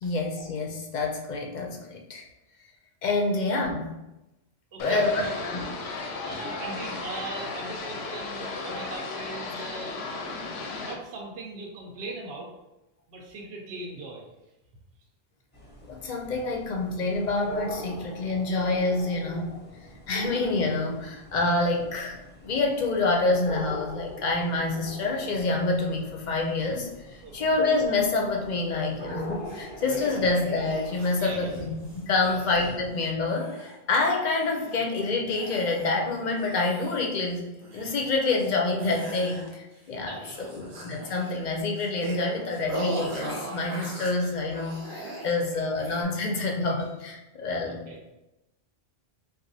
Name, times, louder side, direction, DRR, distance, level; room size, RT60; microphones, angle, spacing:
voice 1, 0.0-2.2 3.0-3.9 4.8-5.6 6.3-6.4 15.9-19.6 20.1-47.8, left 3 dB, 55° left, 1 dB, 0.6 m, -27 dB
voice 2, 4.7-5.3 6.2-10.0 10.8-12.5 13.1-14.2 27.2-27.3 30.1-30.2 31.1-31.6 32.2-32.5 40.1-40.6 45.6-45.7 47.7-48.0, right 3 dB, 85° right, -1 dB, 0.9 m, -39 dB
sound 1, 4.8-10.9, left 3 dB, 85° left, 0.8 m, -35 dB
sound 2, 15.5-32.9, equal, 10° left, 0.6 m, -44 dB
sound 3, 29.5-34.0 34.2-34.9 35.3-36.0 36.3-37.3 37.6-38.5 38.8-39.8 40.1-45.4 45.7-46.0, right 2 dB, 60° right, 0.8 m, -39 dB
4.0 x 2.4 x 2.6 m, 0.96 s
omnidirectional pair, 1.1 m